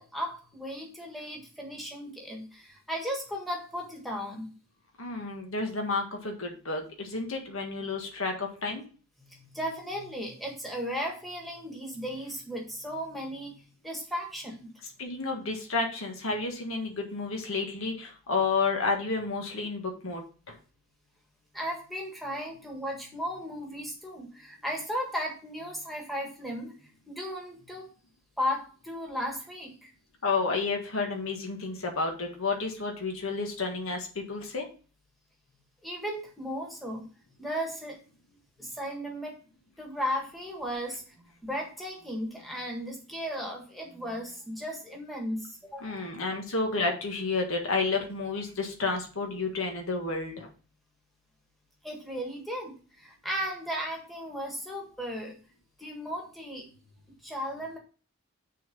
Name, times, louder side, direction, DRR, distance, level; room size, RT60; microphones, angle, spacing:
voice 1, 0.0-4.5 9.2-14.7 21.5-27.9 28.4-29.9 35.8-37.1 37.4-38.0 38.6-39.3 39.8-46.0 51.8-55.3 55.8-56.7 57.2-57.8, equal, ahead, 0 dB, 1.6 m, -36 dB
voice 2, 5.0-8.8 15.0-20.5 30.2-34.6 45.8-50.5, left 3 dB, 70° left, 2 dB, 1.7 m, -31 dB
6.5 x 4.0 x 5.3 m, 0.38 s
head